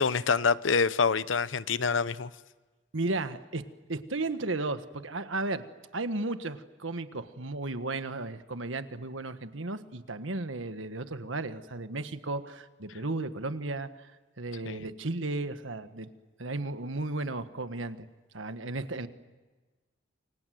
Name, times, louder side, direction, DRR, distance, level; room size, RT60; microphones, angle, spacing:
voice 1, 0.0-2.3 14.6-14.8, left 5 dB, 80° left, 0.8 m, -26 dB
voice 2, 2.9-3.6 3.9-5.6 5.9-14.1 14.4-16.1 16.4-18.1 18.3-19.1, right 2 dB, 90° right, 1.5 m, -34 dB
29.0 x 24.5 x 7.8 m
head